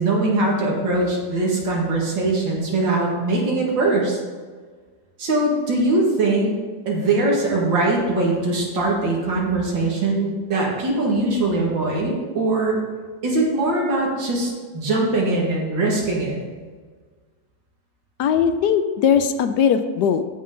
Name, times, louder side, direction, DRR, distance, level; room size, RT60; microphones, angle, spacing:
voice 1, 0.0-4.2 5.2-6.5 6.9-12.8 13.2-16.4, right 2 dB, 85° right, -2 dB, 2.7 m, -21 dB
voice 2, 18.2-20.2, left 7 dB, 75° left, 10 dB, 1.1 m, -19 dB
15.0 x 5.7 x 3.9 m, 1.5 s
omnidirectional pair, 2.0 m